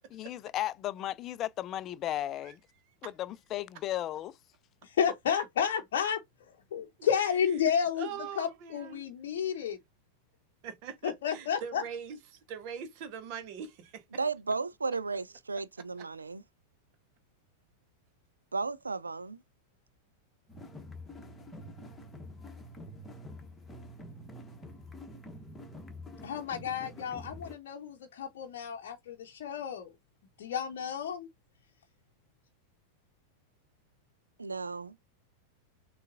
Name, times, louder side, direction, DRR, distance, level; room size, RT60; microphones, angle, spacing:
voice 1, 0.1-2.6 3.0-4.4, left 13 dB, 35° left, 0.4 m, -35 dB
voice 2, 4.8-6.2 6.7-8.1 8.4-9.8 11.0-11.8 26.2-29.9 30.4-31.3, left 8 dB, 55° left, 0.7 m, -31 dB
voice 3, 8.0-9.1 10.6-14.0, right 7 dB, 45° right, 0.8 m, -42 dB
voice 4, 14.1-16.4 18.5-19.4 34.4-34.9, right 4 dB, 80° right, 0.3 m, -34 dB
sound 1, 20.5-27.5, left 1 dB, 10° left, 1.1 m, -47 dB
6.4 x 2.3 x 2.5 m
figure-of-eight pair, 90°, 0 cm